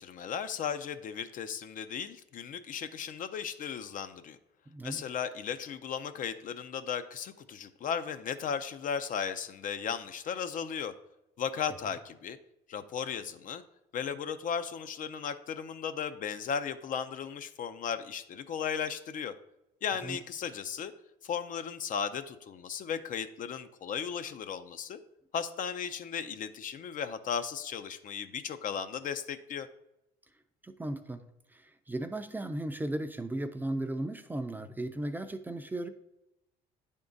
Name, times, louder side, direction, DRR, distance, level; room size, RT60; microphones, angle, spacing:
voice 1, 0.0-4.4 4.8-10.9 11.4-12.4 12.7-13.6 13.9-19.3 19.8-20.9 21.2-25.0 25.3-29.7, left 7 dB, 50° left, 10 dB, 0.5 m, -36 dB
voice 2, 4.7-5.0 20.0-20.2 30.6-31.2 31.5-35.9, right 1 dB, 10° right, 7 dB, 0.5 m, -36 dB
9.4 x 3.6 x 3.9 m, 0.88 s
cardioid pair, 110°, 17 cm